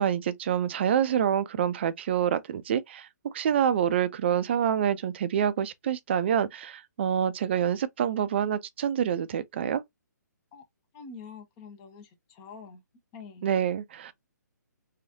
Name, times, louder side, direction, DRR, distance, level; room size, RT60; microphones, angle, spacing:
voice 1, 0.0-3.1 3.3-9.8 13.4-14.1, right 9 dB, 35° right, 0.4 m, -27 dB
voice 2, 10.9-12.8 13.1-13.5, left 5 dB, 25° left, 0.6 m, -46 dB
3.0 x 2.4 x 2.6 m
figure-of-eight pair, 135°, 10 cm